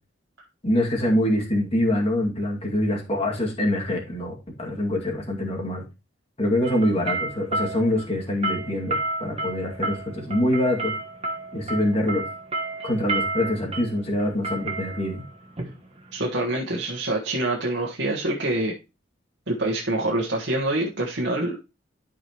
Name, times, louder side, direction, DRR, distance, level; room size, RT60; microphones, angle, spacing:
voice 1, 0.6-5.8 6.4-10.9 11.5-12.2 12.8-15.2, left 1 dB, 30° left, -1 dB, 2.2 m, -25 dB
sound 1, 6.6-16.5, right 2 dB, 30° right, 1.4 m, -31 dB
voice 2, 16.1-18.7 19.5-21.6, right 2 dB, 65° right, -2 dB, 1.4 m, -26 dB
12.5 x 4.9 x 3.0 m, 0.28 s
head